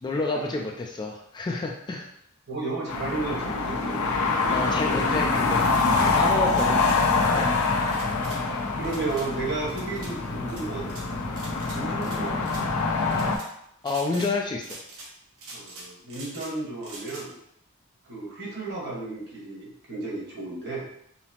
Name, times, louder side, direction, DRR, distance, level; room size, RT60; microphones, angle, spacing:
voice 1, 0.0-2.1 4.5-5.7 6.0-6.8 7.3-7.8 11.5-11.7 13.8-14.8, left 3 dB, 20° left, 1 dB, 0.3 m, -29 dB
voice 2, 2.5-4.1 4.5-4.6 6.0-6.1 8.8-11.0 11.7-12.5 15.5-17.4 18.1-20.9, right 3 dB, 55° right, -4 dB, 1.3 m, -33 dB
sound 1, 2.9-13.4, left 4 dB, 85° left, 0.6 m, -25 dB
sound 2, 6.5-7.0 7.9-8.4 8.8-9.3 9.7-10.1 10.5-11.0 11.4-12.2 12.4-12.6 13.1-13.5 13.8-14.3 14.6-15.1 15.4-16.5 16.8-17.2, right 2 dB, 75° right, 0.9 m, -43 dB
5.5 x 2.0 x 2.8 m, 0.73 s
head